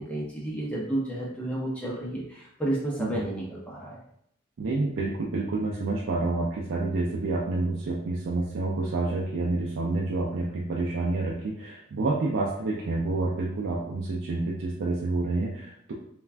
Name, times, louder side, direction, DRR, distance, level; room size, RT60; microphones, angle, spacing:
voice 1, 0.0-4.0, right 1 dB, 5° left, -5 dB, 0.4 m, -31 dB
voice 2, 4.6-15.9, right 2 dB, 70° right, -3 dB, 0.4 m, -28 dB
3.3 x 2.2 x 2.4 m, 0.70 s
head